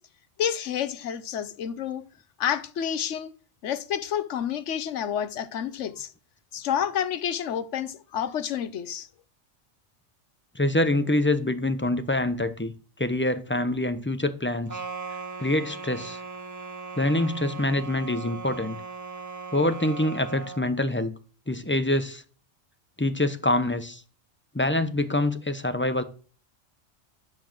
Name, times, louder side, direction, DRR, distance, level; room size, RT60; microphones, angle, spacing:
voice 1, 0.4-2.0 2.4-3.3 3.6-6.1 6.5-9.1, left 9 dB, 85° left, 1.1 m, -29 dB
voice 2, 10.5-12.7 13.0-14.8 15.4-16.2 17.0-18.8 19.5-21.2 21.5-22.2 23.0-24.0 24.5-26.0, left 1 dB, 10° left, 0.8 m, -25 dB
sound 1, 14.7-20.7, right 4 dB, 20° right, 0.6 m, -38 dB
12.0 x 4.7 x 7.6 m
omnidirectional pair, 1.2 m